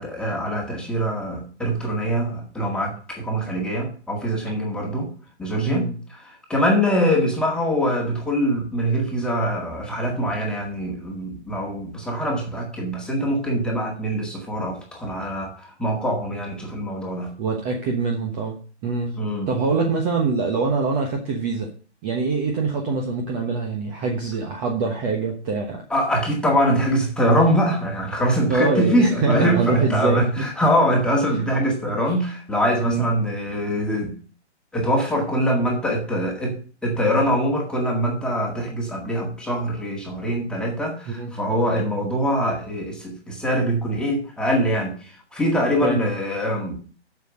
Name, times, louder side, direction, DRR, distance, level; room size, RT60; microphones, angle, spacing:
voice 1, 0.0-5.1 5.4-17.3 19.2-19.5 25.9-34.1 34.7-46.8, equal, ahead, -1 dB, 1.9 m, -23 dB
voice 2, 17.4-18.6 18.8-19.2 19.5-21.7 22.0-25.8 28.5-30.3 31.3-31.4 32.9-33.1 41.1-41.3 45.8-46.0, right 4 dB, 20° right, 2 dB, 1.2 m, -24 dB
8.1 x 6.9 x 6.4 m, 0.40 s
figure-of-eight pair, 130°, 35 cm